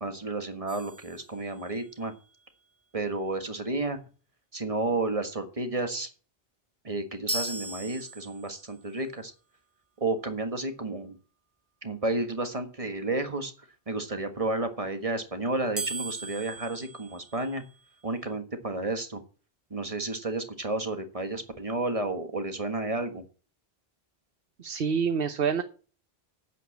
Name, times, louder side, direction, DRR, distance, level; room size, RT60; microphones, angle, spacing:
voice 1, 0.0-2.1 2.9-4.0 4.5-6.1 6.8-9.3 10.0-11.2 11.8-13.5 13.9-17.6 18.0-19.2 19.7-23.2, right 2 dB, 35° right, 7 dB, 1.6 m, -31 dB
sound 1, 0.7-2.0 7.3-8.8 15.8-17.9, right 2 dB, 15° right, 0.6 m, -38 dB
voice 2, 24.6-25.6, right 6 dB, 65° right, 9 dB, 1.1 m, -27 dB
9.3 x 7.6 x 7.4 m, 0.39 s
omnidirectional pair, 1.0 m